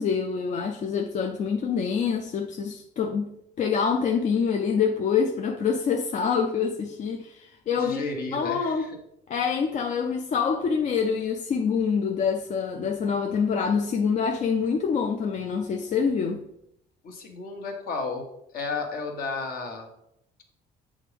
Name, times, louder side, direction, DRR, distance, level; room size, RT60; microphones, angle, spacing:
voice 1, 0.0-8.0 8.3-8.9 9.3-16.4, left 6 dB, 45° left, 0.5 m, -26 dB
voice 2, 7.8-8.9 17.0-18.3 18.5-19.9, left 4 dB, 60° left, 1.4 m, -33 dB
7.9 x 3.7 x 3.4 m
cardioid pair, 110°, 17 cm